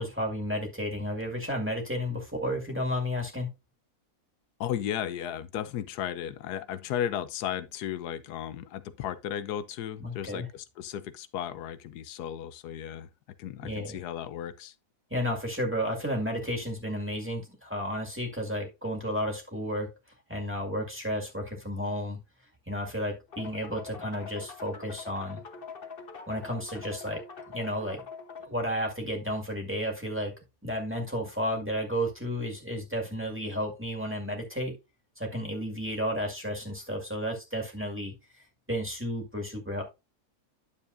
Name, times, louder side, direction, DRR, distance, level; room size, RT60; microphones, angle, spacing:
voice 1, 0.0-3.5 10.0-10.5 13.6-14.0 15.1-19.9 20.3-22.2 22.7-25.4 26.3-27.2 27.5-28.1 28.4-30.3 30.6-34.7 35.2-39.8, equal, 10° right, 1.9 m, -32 dB
voice 2, 4.6-13.1 13.4-14.7, left 10 dB, 90° left, 1.2 m, -35 dB
sound 1, 23.3-28.5, left 5 dB, 40° left, 1.2 m, -43 dB
10.0 x 6.9 x 2.6 m
omnidirectional pair, 1.6 m